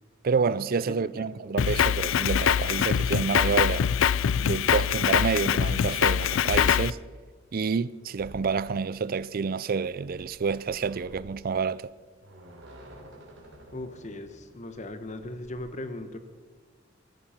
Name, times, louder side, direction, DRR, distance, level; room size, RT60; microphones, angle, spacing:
voice 1, 0.2-3.8 4.4-7.0 7.5-11.9, right 5 dB, 50° right, 0.4 m, -28 dB
voice 2, 0.9-1.3 13.7-16.2, left 1 dB, 35° left, 1.2 m, -38 dB
Drum kit, 1.6-6.9, left 8 dB, 80° left, 0.4 m, -24 dB
sound 1, 8.1-15.7, right 1 dB, 65° right, 3.8 m, -51 dB
15.0 x 14.5 x 5.9 m
head